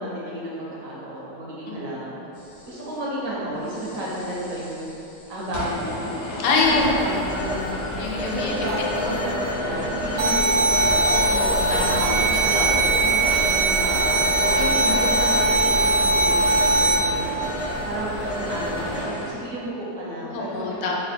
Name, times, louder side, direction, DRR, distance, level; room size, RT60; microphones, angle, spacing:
voice 1, 0.0-2.2 2.6-4.8 5.3-6.1 6.7-7.6 8.2-8.8 9.1-11.0 11.7-13.2 13.4-14.5 14.9-15.9 16.2-17.5 17.8-20.9, right 1 dB, 65° right, -6 dB, 0.9 m, -32 dB
sound 1, 2.3-3.0 3.6-19.3, equal, 60° left, 0.9 m, -36 dB
voice 2, 6.4-6.9 8.0-8.5 9.0-9.2 11.1-12.2 12.5-12.7 14.6-15.0 20.3-20.9, left 3 dB, 85° left, -2 dB, 1.2 m, -25 dB
Telephone, 6.6-19.0, left 1 dB, 40° left, 0.4 m, -30 dB
sound 2, 10.2-17.0, right 2 dB, 80° right, 1.3 m, -20 dB
3.2 x 2.2 x 4.2 m, 3.0 s
omnidirectional pair, 1.8 m